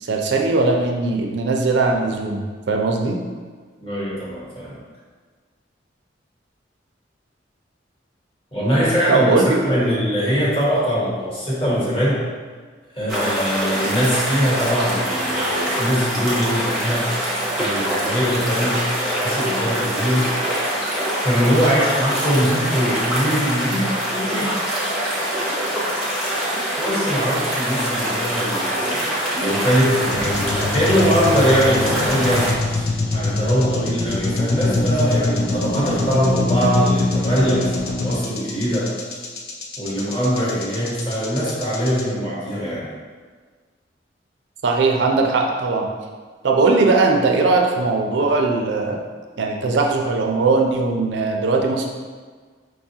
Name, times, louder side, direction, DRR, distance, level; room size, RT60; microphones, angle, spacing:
voice 1, 0.0-3.2 9.1-9.6 44.6-45.9 46.4-49.0 49.4-51.9, right 3 dB, 70° right, 1 dB, 0.4 m, -19 dB
voice 2, 3.8-4.8 8.5-12.3 12.9-17.2 17.5-20.9 21.2-24.5 26.8-39.0 39.8-42.9, equal, 30° left, -7 dB, 1.0 m, -22 dB
sound 1, 13.1-32.5, equal, ahead, 0.7 m, -24 dB
sound 2, 30.1-42.0, left 2 dB, 60° left, 0.5 m, -23 dB
5.1 x 2.3 x 2.7 m, 1.5 s
head